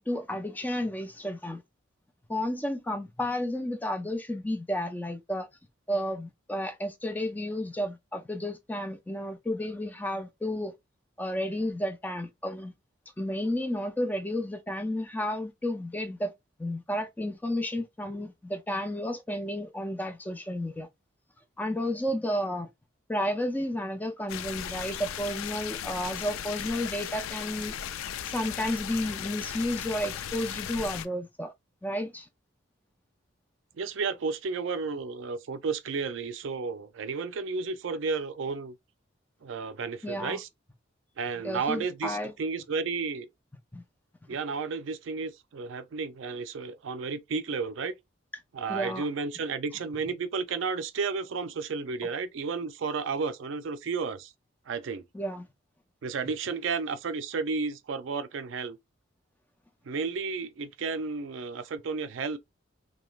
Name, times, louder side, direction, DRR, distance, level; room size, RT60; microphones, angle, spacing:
voice 1, 0.0-1.6 2.3-5.5 5.9-10.7 11.2-12.7 13.2-16.3 16.6-20.9 21.6-22.7 23.1-27.7 28.3-31.5 31.8-32.3 40.0-40.4 41.4-42.3 43.7-43.8 48.7-49.1 55.1-55.5, left 1 dB, 10° left, 0.3 m, -32 dB
sound 1, 24.3-31.1, left 9 dB, 85° left, 0.3 m, -36 dB
voice 2, 33.7-38.7 39.4-40.5 41.2-43.3 44.3-48.0 48.5-54.3 54.7-55.0 56.0-58.8 59.9-62.4, right 4 dB, 65° right, 0.4 m, -32 dB
3.1 x 2.2 x 2.3 m
head